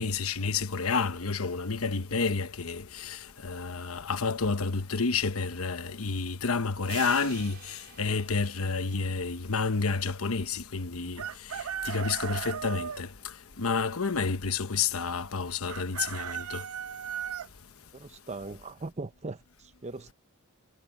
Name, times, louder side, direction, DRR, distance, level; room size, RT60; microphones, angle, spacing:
voice 1, 0.0-11.2 11.8-13.1 13.6-16.6, left 4 dB, 75° left, 1.1 m, -30 dB
sound 1, 6.8-9.6, right 9 dB, 55° right, 4.8 m, -46 dB
Chicken rooster, 11.2-13.0 15.7-17.5, right 8 dB, 75° right, 0.5 m, -36 dB
voice 2, 17.9-20.1, right 3 dB, 30° right, 0.7 m, -40 dB
head